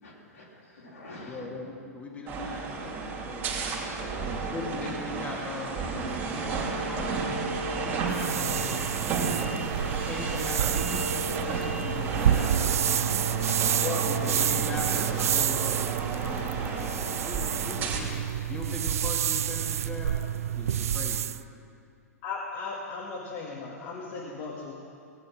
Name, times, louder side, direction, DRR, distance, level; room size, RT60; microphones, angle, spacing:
voice 1, 0.0-1.6 4.0-4.7, left 1 dB, 65° left, -4 dB, 4.0 m, -46 dB
voice 2, 1.2-3.5 4.5-9.2 9.9-12.5 13.3-18.1 18.5-20.1 20.6-21.2, left 2 dB, 15° left, -3 dB, 2.1 m, -39 dB
sound 1, 2.3-18.0, right 4 dB, 25° right, 2.8 m, -32 dB
sound 2, 8.1-21.4, right 10 dB, 60° right, 0.4 m, -29 dB
sound 3, 13.5-17.5, right 10 dB, 45° right, 0.9 m, -42 dB
voice 3, 22.2-24.7, left 4 dB, 40° left, -3 dB, 1.9 m, -36 dB
19.0 x 8.9 x 6.0 m, 2.3 s
figure-of-eight pair, 105°, 9 cm